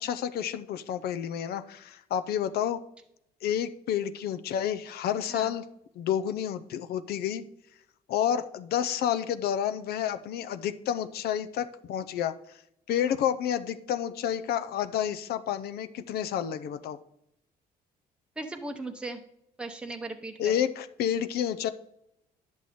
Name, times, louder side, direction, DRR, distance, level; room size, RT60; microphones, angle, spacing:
voice 1, 0.0-2.8 3.4-5.6 6.0-7.4 8.1-12.6 12.9-17.0 20.4-21.7, left 9 dB, 65° left, 11 dB, 0.6 m, -30 dB
voice 2, 18.4-19.2 19.6-20.5, right 2 dB, 5° right, 5 dB, 0.8 m, -37 dB
10.5 x 6.3 x 4.2 m, 0.79 s
cardioid pair, 110°, 17 cm